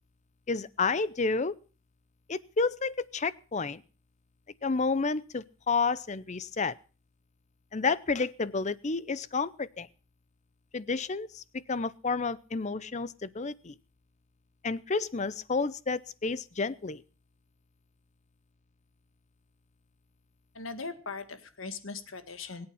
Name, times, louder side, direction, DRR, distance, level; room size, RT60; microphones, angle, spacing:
voice 1, 0.5-1.5 2.3-3.8 4.6-6.7 7.7-9.9 10.7-11.4 11.7-13.7 14.6-17.0, left 4 dB, 35° left, 18 dB, 0.6 m, -30 dB
voice 2, 20.6-22.7, left 4 dB, 70° left, 10 dB, 1.8 m, -39 dB
22.0 x 8.7 x 5.7 m, 0.37 s
head